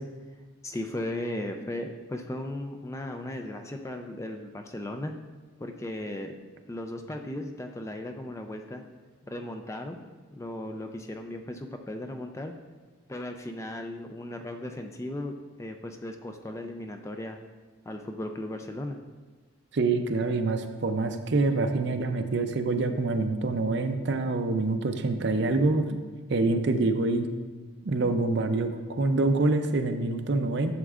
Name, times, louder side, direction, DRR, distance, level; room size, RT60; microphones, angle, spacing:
voice 1, 0.6-5.1 5.6-6.4 6.7-8.8 9.3-10.0 10.3-12.5 13.1-17.4 17.9-19.0, left 1 dB, 15° left, 5 dB, 0.3 m, -36 dB
voice 2, 19.7-26.0 26.3-27.3 27.8-30.7, right 3 dB, 55° right, 7 dB, 0.5 m, -26 dB
11.0 x 7.2 x 2.4 m, 1.3 s
head